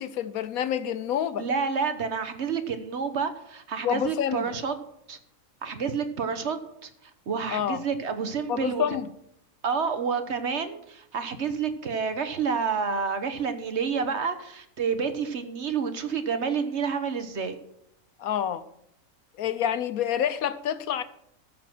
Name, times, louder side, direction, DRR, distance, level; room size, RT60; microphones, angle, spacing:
voice 1, 0.0-1.4 3.8-4.5 7.5-7.8 8.5-9.1 18.2-18.6 19.4-21.0, left 9 dB, 80° left, 1.2 m, -28 dB
voice 2, 1.4-4.7 5.1-5.2 5.6-6.9 7.3-8.8 9.6-17.6, right 6 dB, 55° right, 1.2 m, -29 dB
14.0 x 7.1 x 6.1 m
omnidirectional pair, 1.5 m